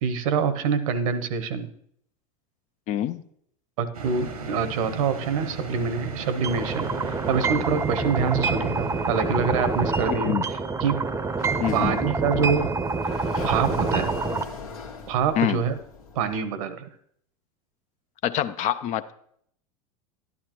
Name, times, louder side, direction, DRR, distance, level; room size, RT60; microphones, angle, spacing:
voice 1, 0.0-1.7 3.8-10.4 10.8-11.1 11.7-12.7 13.4-14.1 15.1-15.8 16.1-16.9, right 6 dB, 65° right, 12 dB, 0.9 m, -26 dB
voice 2, 2.9-3.2 10.1-10.4 11.6-11.9 15.4-15.6 18.2-19.1, left 11 dB, 40° left, 13 dB, 0.5 m, -26 dB
sound 1, 3.9-10.2, right 4 dB, 85° right, 1.2 m, -37 dB
sound 2, 6.4-14.4, right 4 dB, 15° right, 0.7 m, -27 dB
Sliding door, 11.3-16.3, left 4 dB, 80° left, 1.5 m, -39 dB
11.5 x 11.0 x 3.0 m, 0.69 s
hypercardioid pair, 85°, 18 cm